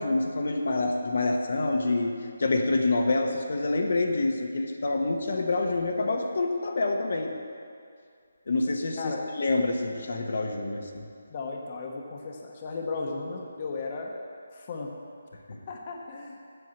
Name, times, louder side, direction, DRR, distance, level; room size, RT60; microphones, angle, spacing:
voice 1, 0.0-2.1 2.4-7.3 8.5-11.1 15.5-15.6, left 2 dB, 60° left, 3 dB, 1.0 m, -27 dB
voice 2, 11.3-14.1 14.5-14.9 15.7-16.4, left 3 dB, 30° left, 0 dB, 0.9 m, -35 dB
7.9 x 7.0 x 7.2 m, 2.3 s
hypercardioid pair, 165°, 0 cm